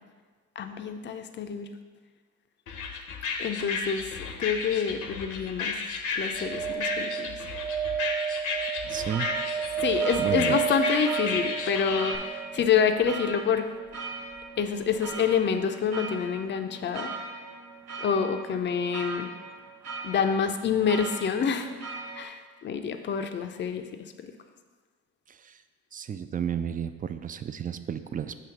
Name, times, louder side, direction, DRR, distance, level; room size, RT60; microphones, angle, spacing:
voice 1, 0.6-1.7 3.4-4.1 4.4-5.8 6.2-7.3 9.8-13.7 14.6-17.1 18.0-19.3 20.0-21.7 22.1-23.9 24.2-24.3, left 7 dB, 35° left, 7 dB, 0.6 m, -27 dB
sound 1, 2.7-12.2, left 4 dB, 60° left, 0.8 m, -33 dB
sound 2, 6.3-12.5 14.8-14.9 15.1-15.2, right 8 dB, 90° right, 0.7 m, -31 dB
voice 2, 8.8-9.3 10.2-10.6 25.3-25.6 25.9-28.3, right 8 dB, 25° right, 10 dB, 0.4 m, -32 dB
sound 3, 8.8-22.2, right 3 dB, 50° right, 1.0 m, -40 dB
6.6 x 3.1 x 5.8 m, 1.4 s
supercardioid pair, 75°, 34 cm